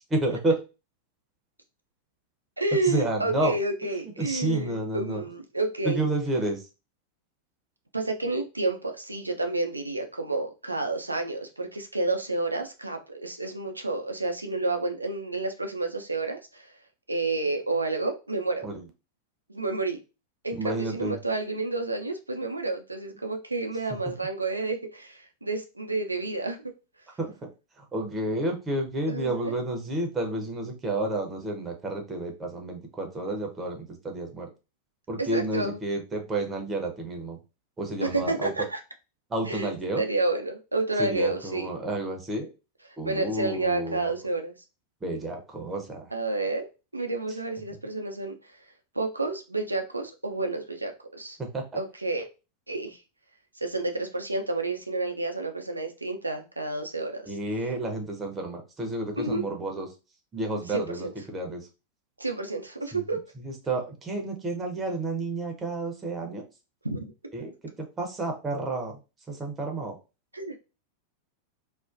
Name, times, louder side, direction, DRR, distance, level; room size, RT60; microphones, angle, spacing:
voice 1, 0.1-0.6 2.9-3.5 4.2-5.2 5.8-6.6 18.6-18.8 20.6-21.1 27.2-27.3 27.9-33.8 34.0-34.5 35.1-37.4 37.8-38.5 39.3-40.0 41.0-42.5 43.0-44.1 45.0-46.0 51.5-51.6 57.3-59.9 60.3-61.6 63.4-66.4 67.3-67.5 68.0-68.9 69.3-69.9, right 2 dB, 15° right, 2 dB, 0.6 m, -30 dB
voice 2, 2.6-6.1 7.9-16.7 17.1-18.7 19.5-20.0 20.4-26.7 29.1-29.5 35.2-35.8 38.0-38.8 39.4-39.7 40.0-41.7 42.8-44.5 46.1-46.7 46.9-48.6 48.9-51.4 51.7-52.3 52.7-53.0 53.6-57.4 59.2-59.4 60.5-61.1 62.2-63.2 66.8-67.1 70.3-70.6, right 2 dB, 85° right, 5 dB, 0.4 m, -30 dB
2.4 x 2.1 x 2.4 m, 0.29 s
figure-of-eight pair, 90°, 0 cm